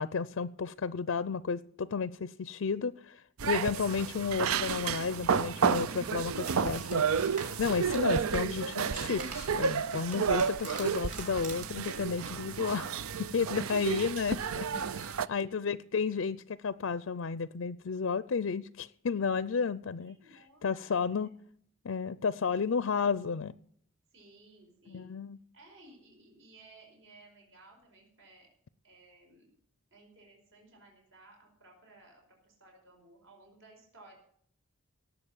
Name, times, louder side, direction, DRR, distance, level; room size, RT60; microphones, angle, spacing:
voice 1, 0.0-14.7 14.9-20.2 20.6-21.3 21.8-23.5 24.9-25.4, left 5 dB, 70° left, 16 dB, 0.5 m, -32 dB
sound 1, 3.4-15.3, right 6 dB, 85° right, 0.6 m, -31 dB
sound 2, 4.9-12.0, right 4 dB, 40° right, 4.3 m, -48 dB
voice 2, 15.2-15.7 20.0-21.3 24.1-25.1 25.5-28.5 28.8-29.4 29.9-34.2, right 2 dB, 65° right, 0 dB, 4.9 m, -58 dB
18.0 x 7.9 x 7.2 m, 0.63 s
head